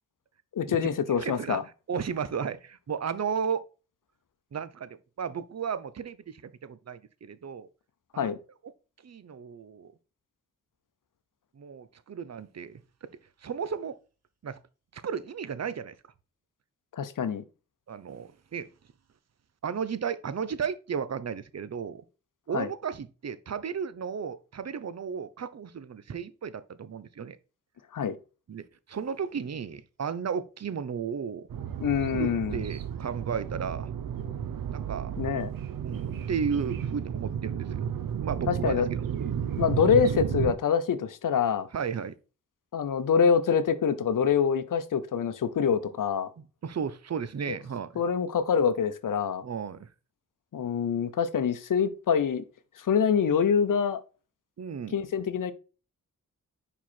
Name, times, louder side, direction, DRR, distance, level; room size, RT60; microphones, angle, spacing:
voice 1, 0.5-1.6 8.2-8.4 16.9-17.4 22.5-22.7 27.9-28.2 31.8-32.6 35.2-35.5 38.5-38.9 39.6-41.7 42.7-46.3 47.5-47.6 48.0-49.4 50.5-52.4 52.8-54.0 54.9-55.5, left 7 dB, 70° left, 0.7 m, -25 dB
voice 2, 1.2-1.6 1.9-3.6 4.5-7.7 8.1-8.3 9.0-9.9 11.6-13.1 13.4-14.0 14.4-14.6 14.9-15.9 17.9-18.7 19.6-22.0 22.5-27.4 28.5-31.5 32.1-33.9 34.7-35.1 35.8-37.9 38.2-39.5 41.7-42.2 46.4-47.9 49.4-49.9 54.6-55.0, right 6 dB, 50° right, 0.7 m, -34 dB
sound 1, 31.5-40.5, right 8 dB, 85° right, 0.7 m, -32 dB
5.5 x 4.7 x 4.4 m
cardioid pair, 50°, 33 cm